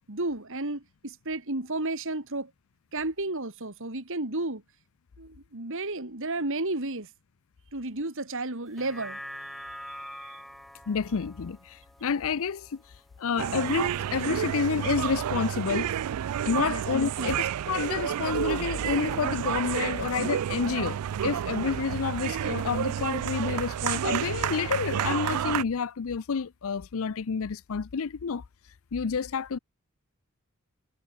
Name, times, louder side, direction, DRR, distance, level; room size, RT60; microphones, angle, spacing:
voice 1, 0.1-2.5 2.9-4.6 5.2-7.1 7.7-9.2 10.2-10.4 16.6-16.8 17.2-17.3, right 2 dB, 60° right, 3.1 m, -32 dB
sound 1, 8.7-13.2 13.6-13.7, equal, ahead, 1.4 m, -44 dB
voice 2, 10.9-12.8 13.2-15.9 16.5-28.4 28.9-29.6, left 6 dB, 65° left, 0.5 m, -29 dB
sound 2, 13.4-25.6, right 9 dB, 85° right, 0.4 m, -30 dB
head